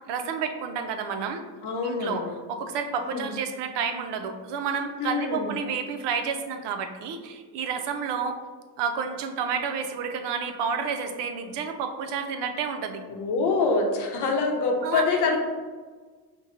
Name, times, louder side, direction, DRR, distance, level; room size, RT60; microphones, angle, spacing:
voice 1, 0.1-1.5 1.8-8.4 8.8-13.0 14.8-15.0, right 6 dB, 85° right, 6 dB, 0.5 m, -30 dB
voice 2, 1.6-2.3 3.0-3.3 5.0-5.5 13.1-15.4, left 4 dB, 75° left, 2 dB, 0.8 m, -25 dB
5.3 x 2.2 x 2.5 m, 1.4 s
cardioid pair, 105°, 40 cm